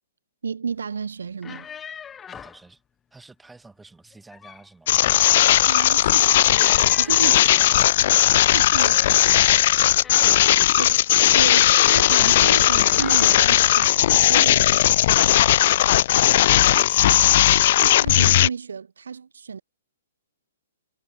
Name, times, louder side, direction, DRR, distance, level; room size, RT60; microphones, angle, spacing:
voice 1, 0.4-1.7 5.7-7.4 8.5-8.9 10.8-11.1 11.3-14.7 17.8-19.6, right 6 dB, 75° right, 2.2 m, -32 dB
sound 1, 1.3-2.6 4.1-4.7 5.0-5.6 6.5-7.9 8.9-10.6 11.8-13.6 14.5-14.8 15.1-15.4, left 7 dB, 15° left, 1.5 m, -41 dB
voice 2, 2.3-2.8 3.1-5.0 7.2-9.6 16.2-17.6, right 3 dB, 5° right, 6.4 m, -49 dB
sound 2, 4.9-18.5, left 13 dB, 50° left, 0.3 m, -17 dB
figure-of-eight pair, 125°, 0 cm